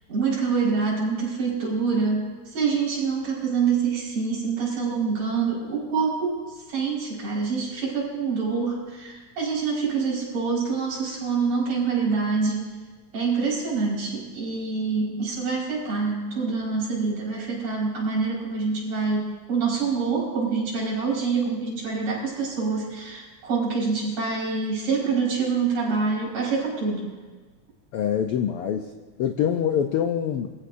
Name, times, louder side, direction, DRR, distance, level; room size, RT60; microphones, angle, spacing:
voice 1, 0.1-12.7 13.1-27.0, right 5 dB, 70° right, -5 dB, 6.4 m, -26 dB
voice 2, 27.9-28.9 29.2-30.5, left 9 dB, 80° left, 5 dB, 1.3 m, -24 dB
23.5 x 15.0 x 2.7 m, 1.4 s
omnidirectional pair, 3.4 m